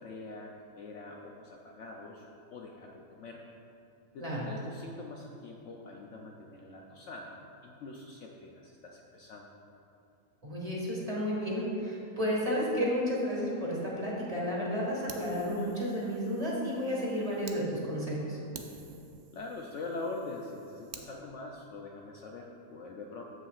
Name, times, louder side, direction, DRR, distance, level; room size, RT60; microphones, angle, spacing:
voice 1, 0.0-2.2 2.5-3.4 4.1-9.5 19.3-23.2, left 3 dB, 65° left, 0 dB, 0.8 m, -43 dB
voice 2, 10.4-18.4, equal, 25° right, -5 dB, 1.6 m, -32 dB
Fire, 15.1-17.6 18.1-18.2 18.5-21.1, right 5 dB, 85° right, 0.4 m, -50 dB
14.5 x 5.7 x 2.4 m, 2.7 s
omnidirectional pair, 1.5 m